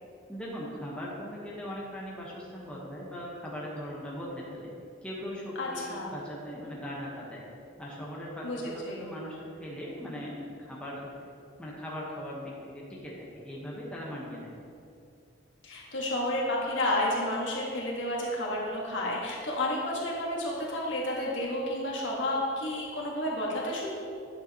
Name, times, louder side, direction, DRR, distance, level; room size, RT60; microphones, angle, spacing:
voice 1, 0.3-4.7 5.0-7.4 7.8-11.1 11.6-14.5, equal, 5° left, -5 dB, 1.1 m, -39 dB
voice 2, 5.5-6.1 8.4-9.1 15.6-23.9, left 1 dB, 70° left, -3 dB, 1.6 m, -31 dB
9.9 x 6.7 x 3.0 m, 2.6 s
head